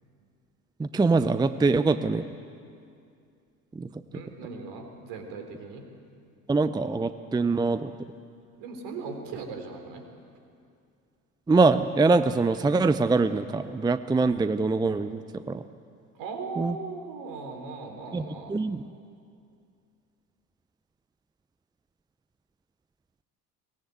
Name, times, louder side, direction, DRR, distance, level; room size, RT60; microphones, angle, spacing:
voice 1, 0.8-2.2 3.7-3.9 6.5-7.9 11.5-15.6 16.6-16.8 18.1-18.8, right 3 dB, 10° right, 12 dB, 0.6 m, -24 dB
voice 2, 4.1-5.9 8.6-10.0 16.2-18.6, right 4 dB, 60° right, 5 dB, 3.9 m, -38 dB
23.0 x 19.0 x 8.1 m, 2.4 s
figure-of-eight pair, 65°, 46 cm